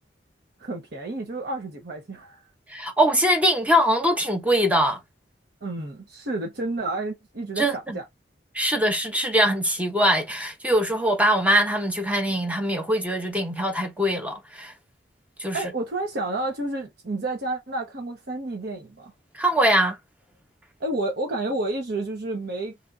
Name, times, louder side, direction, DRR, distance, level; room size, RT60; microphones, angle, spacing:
voice 1, 0.6-2.4 5.6-8.0 15.5-19.1 20.8-22.8, right 2 dB, 60° right, 1.0 m, -30 dB
voice 2, 2.7-5.0 7.6-8.0 8.5-14.7 15.4-15.6 19.3-20.0, equal, 10° right, 0.8 m, -22 dB
2.8 x 2.7 x 3.5 m
head